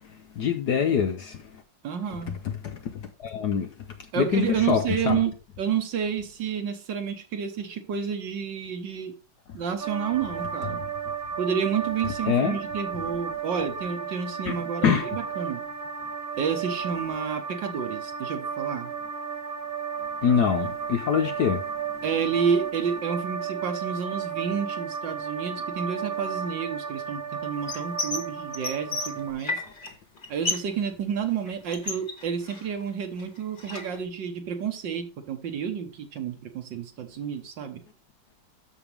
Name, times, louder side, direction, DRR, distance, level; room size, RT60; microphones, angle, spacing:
voice 1, 0.0-1.6 2.6-3.7 4.2-5.2 12.0-12.6 14.5-14.6 14.8-15.1 20.2-21.7, left 7 dB, 65° left, 1.1 m, -25 dB
voice 2, 1.8-2.4 4.1-5.3 5.6-9.1 9.5-10.8 11.4-15.6 16.4-18.9 22.0-29.6 30.3-37.8, right 7 dB, 60° right, 1.6 m, -30 dB
sound 1, 9.8-29.3, right 6 dB, 10° right, 1.4 m, -34 dB
sound 2, 27.7-28.2 28.5-29.9 30.2-30.7 31.0-32.8 33.2-34.0, left 2 dB, 25° left, 1.3 m, -32 dB
13.0 x 5.2 x 3.4 m
omnidirectional pair, 2.4 m